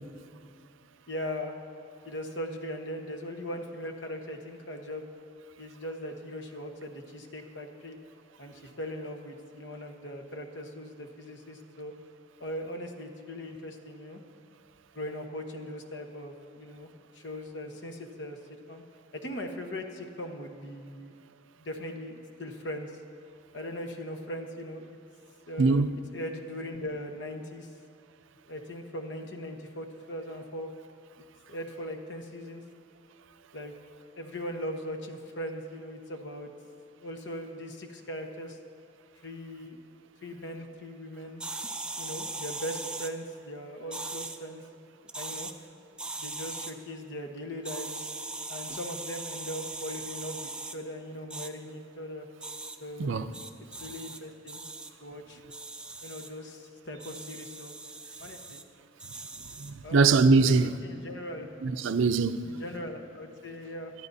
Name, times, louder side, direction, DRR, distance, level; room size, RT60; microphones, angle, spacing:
voice 1, 1.1-1.5 2.0-5.1 5.6-8.0 8.4-11.9 12.4-14.2 14.9-18.4 18.7-18.8 19.1-21.1 21.6-22.9 23.5-25.0 25.5-25.8 26.1-27.7 28.5-30.7 31.5-32.6 33.5-33.7 34.2-36.5 37.0-38.6 39.2-39.8 40.2-41.4 42.0-44.6 45.1-45.5 46.2-48.1 48.5-52.3 52.8-53.1 53.8-54.6 55.0-55.4 56.0-57.7 58.2-58.6 59.8-60.1 60.4-61.5 62.4-63.9, equal, 65° left, 1.2 m, -39 dB
sound 1, 41.4-43.1 43.9-44.4 45.1-45.5 46.0-46.7 47.6-50.8 51.3-51.5 52.4-52.8 53.3-54.2 54.5-54.9 55.5-56.3 57.0-58.6 59.0-59.7, right 2 dB, 5° right, 0.4 m, -39 dB
voice 2, 53.0-53.3 59.6-60.7 61.6-62.4, right 4 dB, 85° right, 0.5 m, -22 dB
21.5 x 13.5 x 2.7 m
head